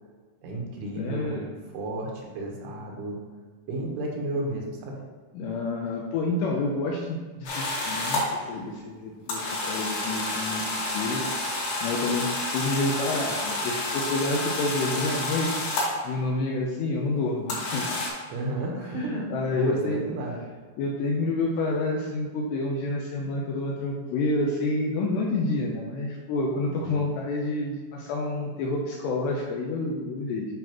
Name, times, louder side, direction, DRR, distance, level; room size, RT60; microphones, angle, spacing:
voice 1, 0.4-3.2 3.7-5.0 18.3-20.4 26.8-27.0, right 1 dB, 80° right, -1 dB, 3.7 m, -33 dB
voice 2, 0.9-1.5 5.3-11.2 11.5-15.7 16.0-17.9 19.0-20.0 20.8-30.5, left 2 dB, 80° left, -1 dB, 2.5 m, -29 dB
sound 1, 7.5-8.3 9.3-16.0 17.5-18.1, left 2 dB, 65° left, 4.1 m, -29 dB
10.0 x 5.6 x 3.1 m, 1.4 s
omnidirectional pair, 5.6 m